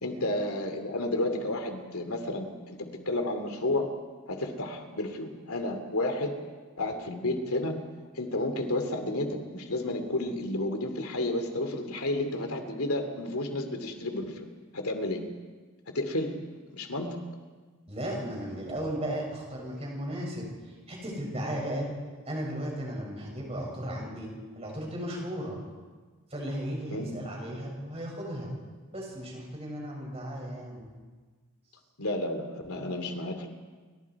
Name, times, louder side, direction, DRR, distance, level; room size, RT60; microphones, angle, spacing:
voice 1, 0.0-3.9 4.3-6.3 6.8-7.7 8.1-14.5 14.7-15.2 15.9-16.3 16.7-17.2 26.9-27.1 32.0-33.5, left 1 dB, 85° left, 6 dB, 2.8 m, -31 dB
voice 2, 17.9-22.0 22.3-25.6 26.3-28.5 28.9-30.9, equal, 30° right, -1 dB, 7.3 m, -35 dB
29.0 x 24.5 x 4.9 m, 1.4 s
head